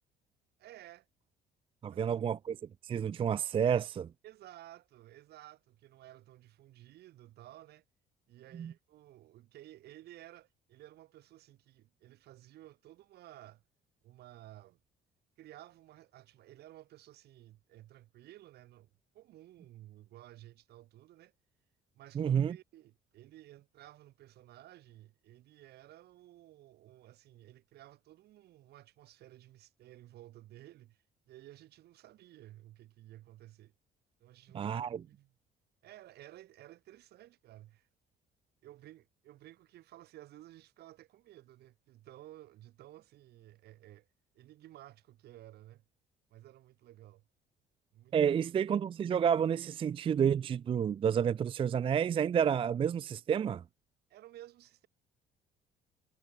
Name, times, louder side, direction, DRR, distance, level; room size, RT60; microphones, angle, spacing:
voice 1, 0.6-1.1 1.9-2.0 4.2-7.8 8.3-13.6 14.0-14.8 15.4-21.3 21.9-33.7 34.2-34.8 35.0-35.3 35.8-37.9 38.6-44.1 44.3-45.8 46.3-47.2 47.9-48.3 54.1-54.9, right 14 dB, 75° right, 6.9 m, -55 dB
voice 2, 1.8-2.6 2.8-4.1 8.5-8.7 22.2-22.6 34.5-35.0 48.1-53.6, right 8 dB, 30° right, 0.4 m, -30 dB
cardioid pair, 110°, 17 cm